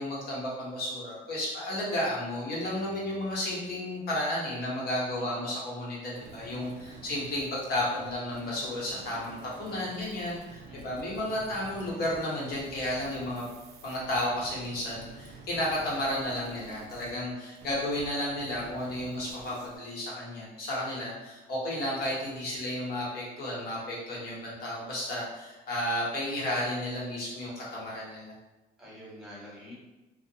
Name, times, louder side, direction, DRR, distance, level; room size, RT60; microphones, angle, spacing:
voice 1, 0.0-13.4 13.8-28.3, left 1 dB, 65° left, -5 dB, 1.0 m, -33 dB
voice 2, 5.1-5.5 10.6-10.9 24.1-24.4 28.8-29.7, left 1 dB, ahead, -7 dB, 1.1 m, -48 dB
sound 1, 6.1-18.1 18.4-19.8, right 4 dB, 80° right, 0.4 m, -49 dB
2.5 x 2.0 x 2.7 m, 1.1 s
cardioid pair, 110°, 17 cm